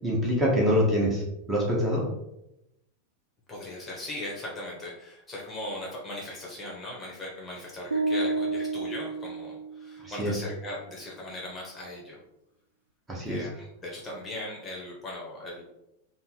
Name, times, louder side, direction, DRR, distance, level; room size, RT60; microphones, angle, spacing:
voice 1, 0.0-1.2 1.5-2.1 10.0-10.4 13.1-13.4, equal, 15° right, -3 dB, 1.2 m, -25 dB
voice 2, 3.5-12.2 13.2-15.6, left 1 dB, 15° left, -3 dB, 1.0 m, -39 dB
sound 1, 7.9-10.1, right 3 dB, 75° right, 0.4 m, -30 dB
4.2 x 2.1 x 3.9 m, 0.86 s
figure-of-eight pair, 90°, 0 cm